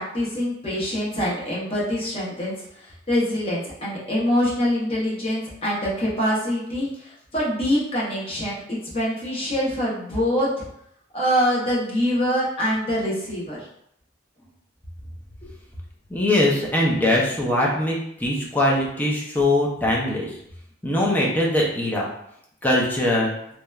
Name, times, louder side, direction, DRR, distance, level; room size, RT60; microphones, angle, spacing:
voice 1, 0.0-10.6 11.1-13.6 15.4-15.5, equal, 30° left, -7 dB, 0.8 m, -25 dB
voice 2, 16.1-20.3 20.8-22.1 22.6-23.3, left 1 dB, 10° left, -4 dB, 0.5 m, -21 dB
2.8 x 2.1 x 2.3 m, 0.74 s
head